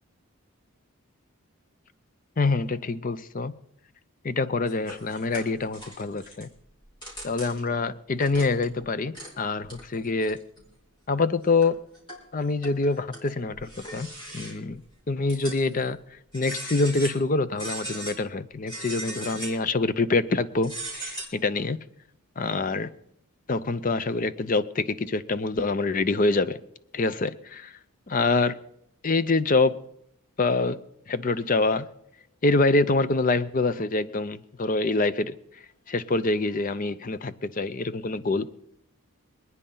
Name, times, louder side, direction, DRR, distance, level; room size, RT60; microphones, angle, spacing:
voice 1, 2.4-3.5 4.2-6.5 7.2-10.4 11.1-11.8 12.3-14.1 14.3-14.8 15.1-16.0 16.3-21.8 22.4-22.9 23.5-26.6 26.9-27.8 28.1-28.6 29.0-29.8 30.4-30.8 31.1-31.9 32.4-35.4 35.9-38.5, left 3 dB, 40° left, 15 dB, 0.5 m, -25 dB
sound 1, 4.7-6.4 6.9-7.8 8.2-8.8 9.1-9.3 9.6-10.6 11.2-11.3 11.6-12.2 12.6-14.7 15.3-15.9 16.3-17.2 17.6-18.2 18.7-19.7 20.6-21.3, right 1 dB, 20° left, 4.2 m, -39 dB
25.5 x 9.7 x 3.9 m, 0.75 s
head